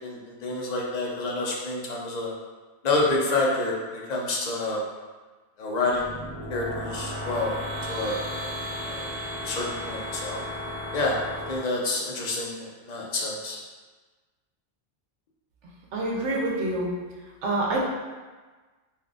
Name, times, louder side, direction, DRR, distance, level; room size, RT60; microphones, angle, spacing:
voice 1, 0.0-2.3 2.8-4.8 5.6-6.1 6.5-7.5 7.9-8.6 8.8-9.1 9.4-10.4 10.9-11.2 11.5-13.6, left 2 dB, 50° left, -3 dB, 0.6 m, -28 dB
sound 1, 5.9-11.6, equal, 40° right, 0.4 m, -34 dB
voice 2, 15.9-16.9 17.4-17.9, right 2 dB, 85° right, -3 dB, 1.0 m, -26 dB
3.6 x 2.6 x 2.4 m, 1.3 s
omnidirectional pair, 1.2 m